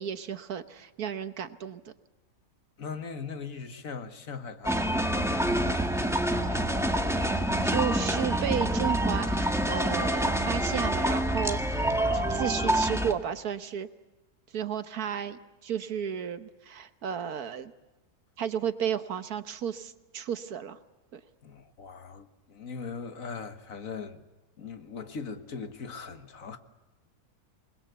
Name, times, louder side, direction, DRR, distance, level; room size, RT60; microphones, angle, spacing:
voice 1, 0.0-1.8 7.6-13.9 14.5-17.7 18.4-20.8 21.1-21.2, right 8 dB, 70° right, 1.5 m, -33 dB
voice 2, 2.8-6.8 21.4-24.2 24.6-26.6, left 5 dB, 60° left, 1.8 m, -40 dB
sound 1, 4.6-13.1, right 1 dB, ahead, 1.6 m, -27 dB
28.5 x 21.0 x 8.2 m
omnidirectional pair, 1.7 m